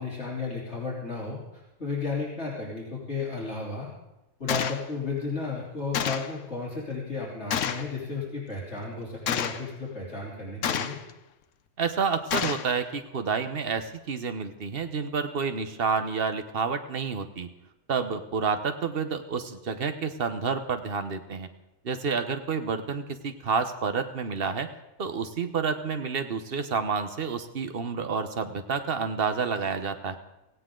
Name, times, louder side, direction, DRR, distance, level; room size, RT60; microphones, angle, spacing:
voice 1, 0.0-3.9 4.4-11.0, left 4 dB, 55° left, -5 dB, 3.6 m, -33 dB
Gunshot gunfire, 4.5-4.8 5.9-6.3 7.5-7.9 9.3-9.7 10.6-11.1 12.3-12.7, left 8 dB, 75° left, 1.1 m, -28 dB
voice 2, 11.8-17.5 17.9-21.5 21.8-24.7 25.0-30.2, right 5 dB, 50° right, 8 dB, 1.2 m, -29 dB
17.0 x 16.5 x 3.8 m, 0.95 s
omnidirectional pair, 1.3 m